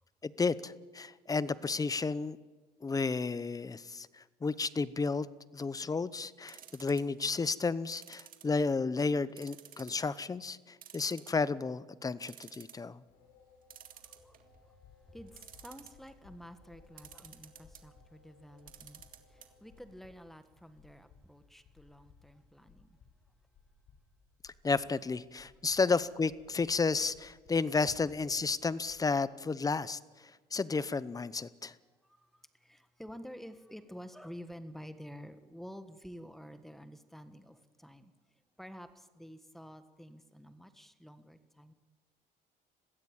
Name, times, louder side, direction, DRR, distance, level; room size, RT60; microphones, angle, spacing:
voice 1, 0.2-2.4 2.8-5.3 5.5-13.0 24.4-30.0 30.5-31.7, left 4 dB, 20° left, 17 dB, 0.8 m, -32 dB
sound 1, 6.5-7.2 7.9-8.9 9.4-10.0 10.4-10.5 10.8-11.6 12.0-12.1 12.2-12.8 13.7-14.6 15.3-16.1 17.0-17.8 18.6-19.5 19.8-19.9 20.1-20.2, right 10 dB, 55° right, 2.1 m, -52 dB
sound 2, 13.1-19.9, left 4 dB, 85° left, 5.5 m, -65 dB
sound 3, 14.3-29.0, left 5 dB, 65° left, 6.5 m, -62 dB
voice 2, 15.1-19.0 19.6-22.9 27.7-27.8 32.6-38.1 38.6-41.7, equal, ahead, 10 dB, 1.5 m, -50 dB
21.5 x 15.5 x 8.9 m, 1.3 s
cardioid pair, 110°, 17 cm